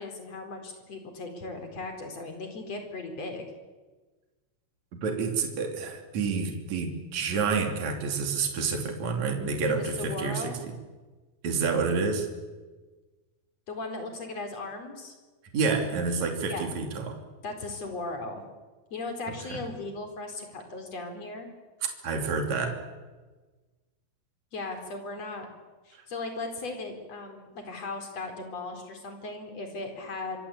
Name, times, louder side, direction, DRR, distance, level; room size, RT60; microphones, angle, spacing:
voice 1, 0.0-3.4 9.5-10.6 13.7-15.1 16.4-16.7 17.4-18.4 18.9-21.5 24.5-25.5 25.9-30.4, left 3 dB, 45° left, 5 dB, 5.3 m, -37 dB
voice 2, 4.9-10.5 11.4-12.3 15.5-17.2 19.5-19.6 22.0-22.8, right 4 dB, 50° right, 4 dB, 4.2 m, -28 dB
26.5 x 24.5 x 8.7 m, 1.3 s
omnidirectional pair, 4.2 m